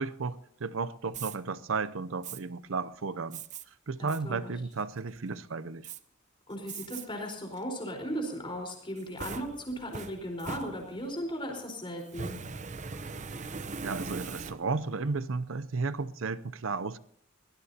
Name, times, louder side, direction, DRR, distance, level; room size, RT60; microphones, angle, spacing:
voice 1, 0.0-3.4 3.9-5.9 13.8-17.0, right 4 dB, 70° right, 0.6 m, -33 dB
Fire, 1.1-1.4 2.2-2.4 3.3-3.6 4.1-4.2 4.7-5.2 5.8-6.0 6.7-7.0 7.5-7.6 8.7-11.2 12.0-14.9, right 4 dB, 35° right, 0.7 m, -40 dB
voice 2, 4.0-4.5 6.5-12.3, equal, 25° left, 4.4 m, -37 dB
22.0 x 18.5 x 2.8 m
head